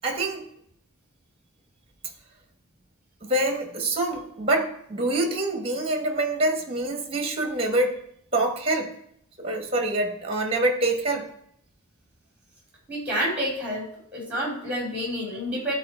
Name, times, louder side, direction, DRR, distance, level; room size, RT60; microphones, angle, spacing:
voice 1, 0.0-0.5 3.2-8.0 8.3-8.9 9.4-11.3, right 2 dB, 25° right, 3 dB, 1.2 m, -25 dB
voice 2, 12.9-13.8 14.1-15.7, equal, 5° right, -3 dB, 3.2 m, -28 dB
12.5 x 4.2 x 4.4 m, 0.71 s
head